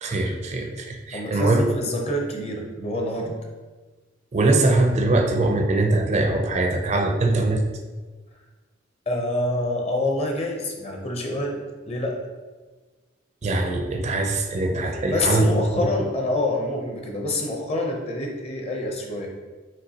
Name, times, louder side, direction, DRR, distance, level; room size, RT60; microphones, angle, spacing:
voice 1, 0.0-1.7 4.3-7.6 13.4-15.9, right 2 dB, 40° right, 4 dB, 0.4 m, -22 dB
voice 2, 1.1-3.4 9.1-11.6 11.9-12.2 15.1-19.3, left 1 dB, 35° left, 1 dB, 0.7 m, -26 dB
5.2 x 3.3 x 2.8 m, 1.3 s
head